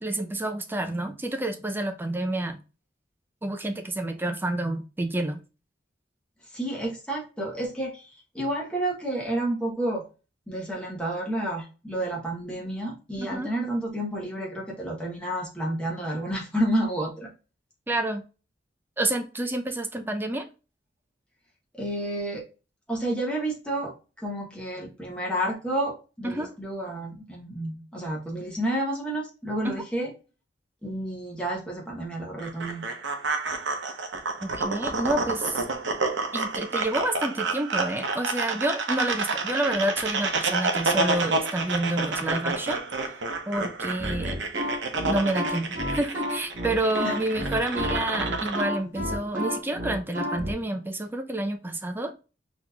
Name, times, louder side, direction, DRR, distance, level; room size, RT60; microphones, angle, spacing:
voice 1, 0.0-2.6 3.4-5.4 13.2-13.5 17.9-18.2 19.0-20.5 26.2-26.5 29.6-29.8 34.4-35.6 36.3-42.8 43.5-44.4 45.0-52.1, right 1 dB, 10° right, 7 dB, 0.4 m, -29 dB
voice 2, 6.5-10.0 10.5-17.3 21.7-22.5 22.9-30.1 30.8-32.8 47.0-47.2, right 1 dB, 5° left, -2 dB, 1.2 m, -30 dB
sound 1, 32.4-48.6, right 3 dB, 80° right, 0.8 m, -29 dB
sound 2, 44.0-50.5, equal, 45° right, 0.8 m, -31 dB
4.1 x 3.0 x 2.2 m, 0.32 s
head